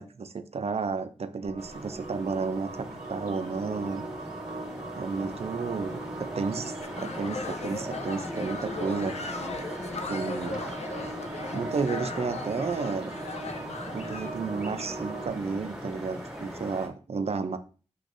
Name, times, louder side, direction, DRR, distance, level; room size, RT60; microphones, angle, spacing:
voice 1, 0.0-4.0 5.0-9.2 10.1-10.7 11.5-13.1 13.9-17.6, right 4 dB, 60° right, 0.5 m, -32 dB
sound 1, 1.4-15.3, right 3 dB, 80° right, 0.8 m, -40 dB
sound 2, 1.6-16.9, equal, 5° right, 1.3 m, -40 dB
sound 3, 6.8-14.3, left 3 dB, 65° left, 0.5 m, -38 dB
6.2 x 3.1 x 2.5 m
wide cardioid pair, 90°, 12 cm